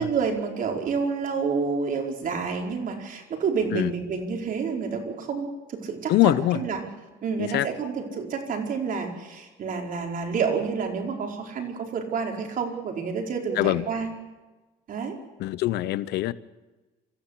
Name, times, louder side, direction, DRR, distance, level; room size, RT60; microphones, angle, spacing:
voice 1, 0.0-6.8 7.2-14.1 14.9-15.2, right 5 dB, 55° right, 2 dB, 4.8 m, -29 dB
voice 2, 6.1-6.6 7.4-7.7 13.6-13.8 15.4-16.3, left 15 dB, 80° left, 17 dB, 0.9 m, -23 dB
27.0 x 15.0 x 8.4 m, 1.2 s
cardioid pair, 110°, 17 cm